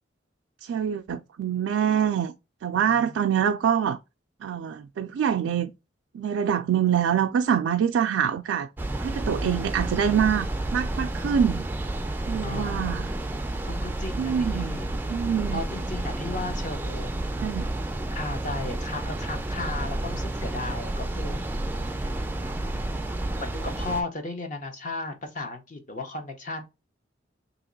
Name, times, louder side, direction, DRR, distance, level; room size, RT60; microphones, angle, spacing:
voice 1, 0.6-2.3 2.6-4.0 4.4-5.7 6.1-8.7 9.0-10.5 10.7-11.7 12.3-13.1 14.2-14.7 15.1-15.6 17.4-17.6, right 8 dB, 85° right, 0.3 m, -25 dB
voice 2, 2.9-3.3 12.4-12.8 13.6-14.9 15.5-17.1 18.1-21.4 22.0-22.1 22.7-26.6, left 2 dB, 40° left, 0.8 m, -35 dB
sound 1, 8.8-24.0, right 1 dB, 10° right, 0.3 m, -30 dB
2.9 x 2.9 x 3.8 m
head